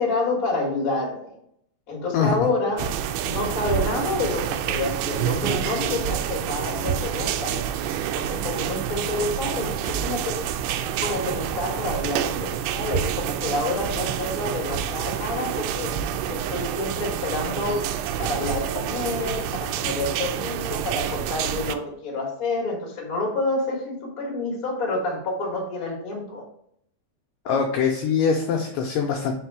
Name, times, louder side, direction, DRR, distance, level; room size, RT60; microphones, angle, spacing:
voice 1, 0.0-1.3 1.9-2.9 3.2-10.4 11.0-16.0 16.3-17.9 18.2-26.4 27.4-27.6, left 2 dB, 45° left, -1 dB, 1.1 m, -28 dB
sound 1, 2.8-21.8, right 9 dB, 90° right, 2.6 m, -28 dB
voice 2, 27.5-29.3, left 6 dB, 85° left, 2 dB, 1.9 m, -23 dB
5.2 x 4.3 x 4.7 m, 0.71 s
omnidirectional pair, 4.6 m